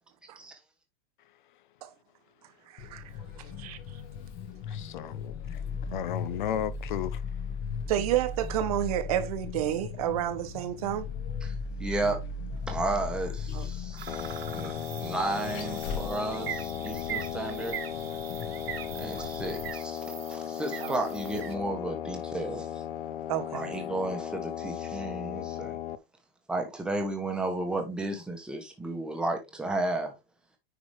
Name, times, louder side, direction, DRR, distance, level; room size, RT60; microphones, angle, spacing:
Vehicle, 2.8-19.7, left 5 dB, 25° left, 1.0 m, -38 dB
voice 1, 4.6-5.6 5.9-7.2, left 11 dB, 55° left, 0.5 m, -34 dB
voice 2, 7.9-11.0 13.5-13.6 20.8-20.9 23.3-23.7, right 12 dB, 40° right, 0.9 m, -30 dB
voice 3, 11.4-12.2 12.7-14.7 15.0-17.8 19.0-22.8 23.5-25.8 26.5-30.1, right 2 dB, 5° right, 1.0 m, -33 dB
sound 1, 14.0-21.5, right 10 dB, 80° right, 1.7 m, -41 dB
sound 2, 14.1-26.0, left 9 dB, 70° left, 1.0 m, -36 dB
9.7 x 4.8 x 3.2 m
supercardioid pair, 180°, 30 cm